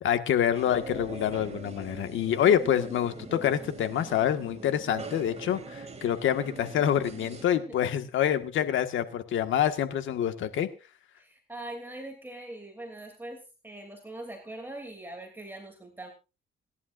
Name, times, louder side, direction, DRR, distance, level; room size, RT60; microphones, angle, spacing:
voice 1, 0.0-10.7, left 10 dB, 75° left, 8 dB, 1.8 m, -26 dB
sound 1, 0.5-7.4, right 4 dB, 35° right, 2.7 m, -42 dB
voice 2, 11.1-16.1, right 1 dB, 10° right, 2 dB, 3.0 m, -42 dB
27.0 x 11.0 x 2.6 m, 0.31 s
cardioid pair, 90°, 20 cm